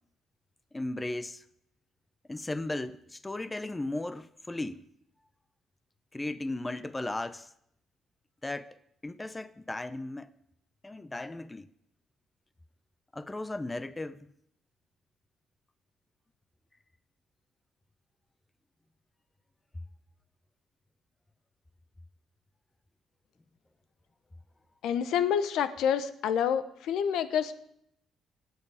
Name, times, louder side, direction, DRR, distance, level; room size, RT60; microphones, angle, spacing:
voice 1, 0.7-1.4 2.3-4.8 6.1-7.5 8.4-8.8 9.0-10.3 10.8-11.7 13.1-14.3, left 2 dB, 15° left, 0.6 m, -36 dB
voice 2, 24.8-27.5, left 8 dB, 85° left, 1.0 m, -28 dB
25.5 x 8.8 x 5.0 m
cardioid pair, 125°, 0 cm